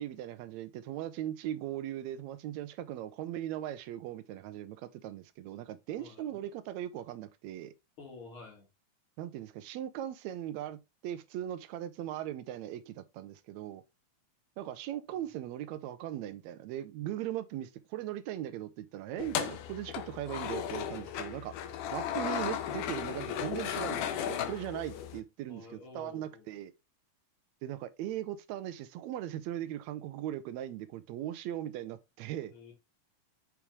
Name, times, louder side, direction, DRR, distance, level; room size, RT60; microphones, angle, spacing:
voice 1, 0.0-7.7 9.2-10.8 11.0-13.8 14.6-21.6 21.9-25.7 26.0-26.7 27.6-32.5, right 12 dB, 75° right, 1.7 m, -39 dB
voice 2, 5.6-6.3 8.0-8.7 25.5-26.5 32.5-32.7, left 3 dB, 45° left, 2.7 m, -50 dB
sound 1, 19.2-25.2, left 9 dB, 90° left, 2.3 m, -35 dB
7.1 x 3.4 x 4.5 m
omnidirectional pair, 3.5 m